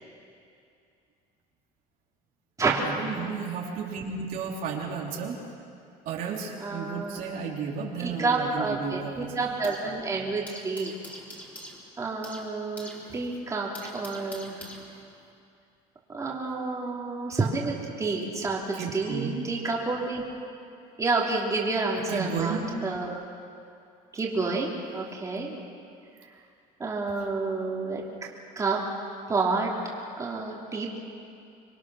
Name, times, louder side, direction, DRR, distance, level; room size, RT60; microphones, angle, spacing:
voice 1, 2.8-5.4 6.1-9.4 18.7-19.5 22.1-22.7, right 6 dB, 60° right, -2 dB, 3.6 m, -33 dB
voice 2, 6.6-7.4 8.0-10.9 12.0-14.6 16.1-20.2 21.0-23.2 24.1-25.6 26.8-28.3 28.5-28.8 29.3-29.7 30.2-31.0, right 3 dB, 20° right, -3 dB, 3.2 m, -29 dB
sound 1, 7.9-10.0 10.2-15.3, equal, 10° left, 4.0 m, -46 dB
26.0 x 22.0 x 6.3 m, 2.5 s
cardioid pair, 130°, 16 cm